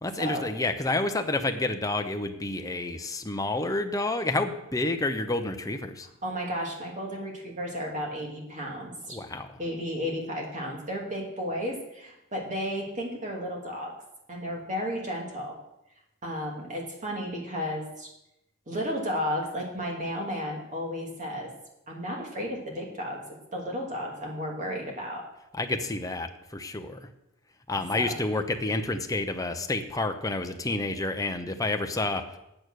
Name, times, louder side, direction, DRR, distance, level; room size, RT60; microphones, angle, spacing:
voice 1, 0.0-6.1 9.1-9.6 25.5-27.0 27.7-32.4, left 2 dB, 15° left, 6 dB, 0.9 m, -29 dB
voice 2, 6.2-9.2 9.6-13.9 14.3-15.5 16.2-18.1 18.7-21.5 21.9-23.2 23.5-25.2 27.9-28.1, equal, 35° right, -1 dB, 2.7 m, -33 dB
9.2 x 8.8 x 6.5 m, 0.87 s
head